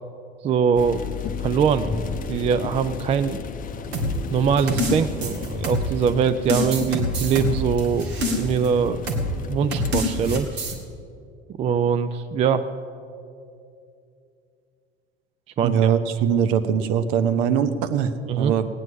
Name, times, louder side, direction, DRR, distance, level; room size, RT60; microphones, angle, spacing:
voice 1, 0.4-1.0 1.4-3.4 4.3-9.0 9.5-10.5 11.6-12.7 15.6-15.9 18.3-18.5, right 7 dB, 20° right, 11 dB, 0.4 m, -22 dB
sound 1, 0.7-10.4, left 5 dB, 25° left, 0.8 m, -32 dB
sound 2, 3.9-6.1 6.5-8.7 9.1-9.3 9.7-10.7, left 1 dB, 70° right, 2.0 m, -26 dB
voice 2, 15.6-18.7, right 8 dB, 50° right, 11 dB, 0.9 m, -22 dB
19.0 x 9.2 x 6.1 m, 2.6 s
figure-of-eight pair, 70°, 33 cm